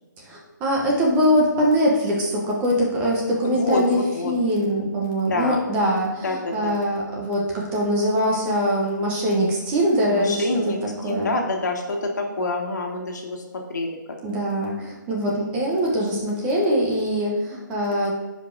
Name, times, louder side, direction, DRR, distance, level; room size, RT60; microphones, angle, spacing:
voice 1, 0.2-4.0 4.2-10.4 11.0-11.3 14.2-18.2, equal, 10° right, -2 dB, 0.7 m, -22 dB
voice 2, 3.4-4.3 5.3-5.6 6.2-6.8 10.1-13.4 13.7-14.4, left 2 dB, 60° left, 1 dB, 1.6 m, -27 dB
15.0 x 5.0 x 2.5 m, 1.2 s
hypercardioid pair, 165°, 11 cm